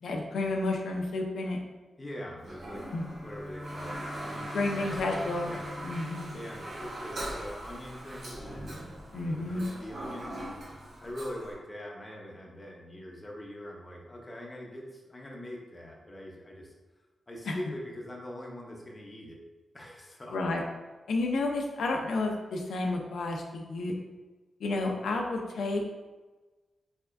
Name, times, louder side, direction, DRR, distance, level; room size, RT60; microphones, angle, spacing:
voice 1, 0.0-1.6 2.9-3.1 4.5-5.5 5.8-6.3 9.1-9.6 17.5-17.6 20.3-20.6 21.1-23.9 24.6-25.8, left 2 dB, 80° left, 1 dB, 0.5 m, -31 dB
voice 2, 2.0-2.8 3.2-5.7 6.3-8.6 9.2-10.4 11.0-16.7 17.3-19.4 19.7-20.4, left 1 dB, 20° left, -1 dB, 0.7 m, -43 dB
Bowed string instrument, 2.4-8.0, left 1 dB, 35° right, 1.5 m, -45 dB
Toilet flush, 2.4-11.5, right 1 dB, 55° right, 1.2 m, -41 dB
4.6 x 4.3 x 2.5 m, 1.2 s
wide cardioid pair, 155°, 0 cm